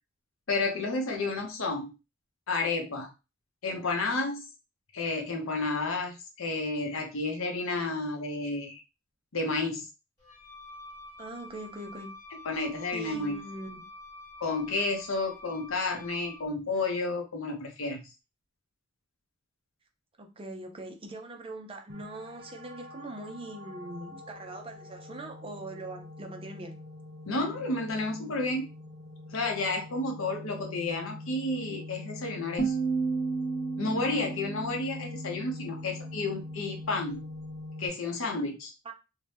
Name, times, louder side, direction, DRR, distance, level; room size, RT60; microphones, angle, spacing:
voice 1, 0.5-1.9 2.5-3.1 3.6-4.5 4.9-8.8 9.3-9.9 12.4-13.4 14.4-18.0 27.3-28.6 29.3-32.7 33.8-37.2 37.8-38.7, left 3 dB, 75° left, 2 dB, 0.7 m, -31 dB
Wind instrument woodwind instrument, 10.2-16.5, left 2 dB, 20° left, 1.4 m, -48 dB
voice 2, 11.2-12.1 12.9-13.8 20.2-26.8 38.8-38.9, right 2 dB, 25° right, 4 dB, 0.5 m, -42 dB
sound 1, 21.9-37.9, left 2 dB, 55° right, 0.9 m, -43 dB
sound 2, 32.6-35.6, right 4 dB, 40° left, 0.8 m, -32 dB
2.7 x 2.2 x 3.2 m, 0.27 s
head